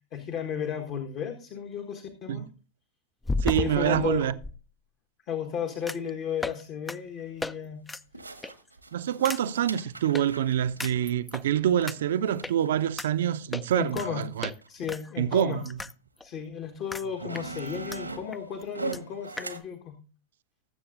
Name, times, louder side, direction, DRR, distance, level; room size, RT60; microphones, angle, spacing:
voice 1, 0.1-2.5 3.5-4.3 5.3-7.9 13.7-14.2 14.7-15.6 16.2-20.0, left 8 dB, 40° left, 1.3 m, -34 dB
sound 1, 0.8-0.9 3.2-4.5 5.9-6.1 6.4-6.6 6.9-7.0 7.4-7.5 7.9-8.0 8.4-8.7 9.2-9.4 10.1-10.2 10.8-11.4 11.9-12.0 12.4-12.5 13.0-13.1 13.5-14.1 14.4-14.6 14.9-15.9 16.2-16.3 16.9-17.1 17.3-18.0 18.3-18.4 18.6-18.7 18.9-19.0 19.4-19.5, left 3 dB, 10° left, 0.4 m, -34 dB
voice 2, 3.4-4.3 8.9-14.5 15.2-15.8, right 10 dB, 60° right, 0.6 m, -26 dB
sound 2, 7.0-7.1 8.1-13.4 13.9-14.0 14.2-14.7 15.5-15.6 16.4-16.5 16.9-19.6, right 3 dB, 85° right, 1.1 m, -41 dB
20.0 x 7.6 x 2.5 m
figure-of-eight pair, 90°, 0 cm